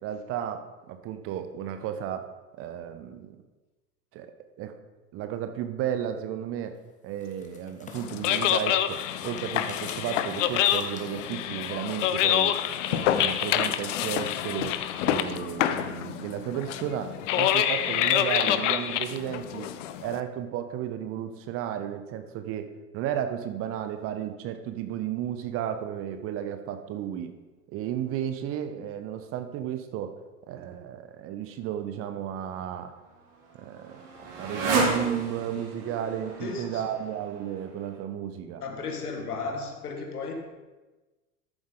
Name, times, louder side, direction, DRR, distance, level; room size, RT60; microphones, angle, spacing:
voice 1, 0.0-2.3 2.5-3.4 4.1-4.3 4.6-4.7 5.1-6.8 7.0-9.0 9.2-12.6 12.9-14.8 15.0-19.7 20.0-27.3 27.7-30.1 30.5-32.9 33.6-34.0 34.4-38.6, right 10 dB, 30° right, 8 dB, 0.7 m, -33 dB
sound 1, 6.6-11.5, left 4 dB, 15° left, 1.3 m, -49 dB
sound 2, 8.0-20.2, left 11 dB, 50° left, 0.7 m, -27 dB
Motorcycle, 32.6-38.0, right 3 dB, 50° right, 2.2 m, -32 dB
voice 2, 36.4-36.9 38.6-40.3, left 4 dB, 70° left, 3 dB, 1.9 m, -34 dB
13.0 x 7.3 x 3.8 m, 1.2 s
figure-of-eight pair, 90°, 46 cm